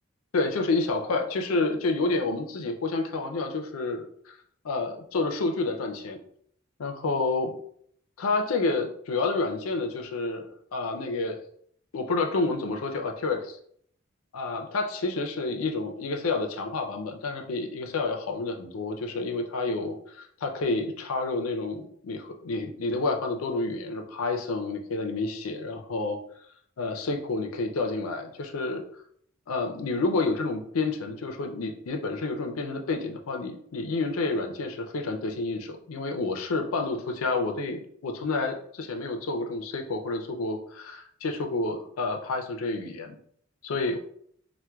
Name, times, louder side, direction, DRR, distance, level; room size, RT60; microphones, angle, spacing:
voice 1, 0.3-4.4 4.6-6.2 6.8-7.5 8.2-11.4 11.9-13.6 14.3-26.2 26.8-28.8 29.5-43.2 43.6-44.0, left 3 dB, 90° left, 4 dB, 0.5 m, -29 dB
4.3 x 2.2 x 2.3 m, 0.65 s
head